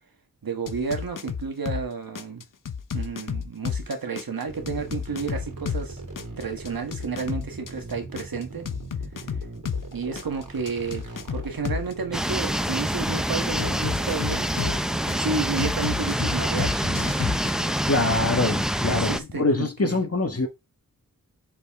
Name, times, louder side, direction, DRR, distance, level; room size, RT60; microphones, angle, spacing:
voice 1, 0.4-2.4 2.9-6.0 6.4-8.7 9.9-17.1 18.7-20.0, right 4 dB, 85° right, 1.6 m, -31 dB
sound 1, 0.7-1.8 2.1-5.9 6.2-9.8 10.2-11.9 13.6-15.2 15.6-17.5, left 7 dB, 65° left, 0.8 m, -31 dB
sound 2, 4.5-18.0, right 3 dB, 65° right, 3.2 m, -41 dB
sound 3, 12.1-19.2, equal, ahead, 0.7 m, -26 dB
voice 2, 17.9-20.5, left 2 dB, 45° left, 1.7 m, -24 dB
6.7 x 4.6 x 3.6 m
wide cardioid pair, 50°, 34 cm